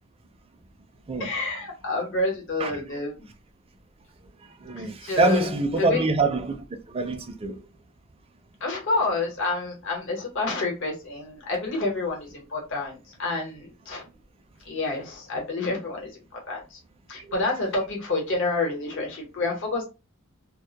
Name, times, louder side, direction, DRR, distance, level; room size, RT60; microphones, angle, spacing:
voice 1, 1.2-3.2 4.8-6.1 8.6-14.0 14.6-16.2 16.5-16.8 17.1-19.8, left 3 dB, 60° left, 1.0 m, -28 dB
voice 2, 4.6-6.6 6.9-7.5, right 3 dB, 25° right, 0.4 m, -24 dB
2.1 x 2.0 x 2.8 m
head